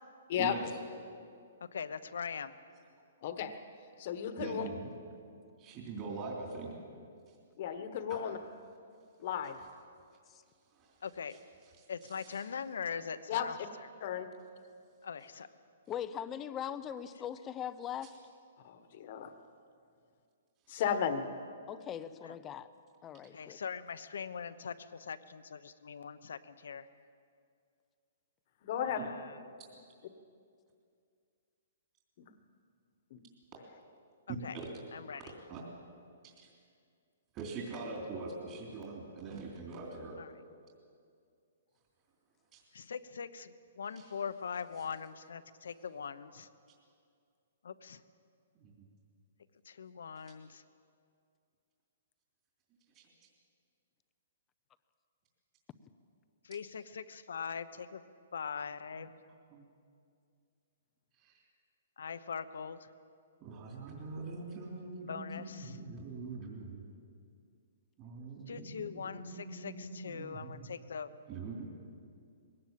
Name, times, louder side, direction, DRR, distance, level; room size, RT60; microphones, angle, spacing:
voice 1, 0.3-0.7 4.4-4.9 5.6-6.7 8.1-8.2 10.7-10.9 11.8-12.4 20.7-20.8 29.0-29.1 35.5-35.6 36.2-36.5 37.3-40.2 42.5-42.6 44.0-44.1 48.5-48.7 52.9-53.1 59.5-59.6 61.2-61.3 63.4-66.8 68.0-70.6 71.3-71.6, right 3 dB, 30° right, -2 dB, 3.3 m, -43 dB
voice 2, 1.6-2.5 11.0-11.4 11.9-13.6 15.0-15.5 22.2-22.4 23.3-26.9 28.9-29.4 34.3-34.6 34.9-35.3 40.2-40.3 42.7-46.5 47.6-48.0 49.6-50.6 56.4-58.0 58.3-59.1 62.0-62.9 65.1-65.8 68.5-71.1, left 6 dB, 85° left, 12 dB, 1.0 m, -42 dB
voice 3, 3.2-3.5 4.0-4.7 7.6-8.4 9.2-9.6 13.3-13.5 14.0-14.3 18.6-19.3 20.7-21.3 28.6-29.0 33.1-33.2, left 8 dB, 40° left, 8 dB, 1.3 m, -34 dB
voice 4, 15.9-18.2 21.7-22.7 23.0-23.6, left 9 dB, 15° left, 12 dB, 0.6 m, -40 dB
21.5 x 17.5 x 7.6 m, 2.3 s
hypercardioid pair, 165°, 0 cm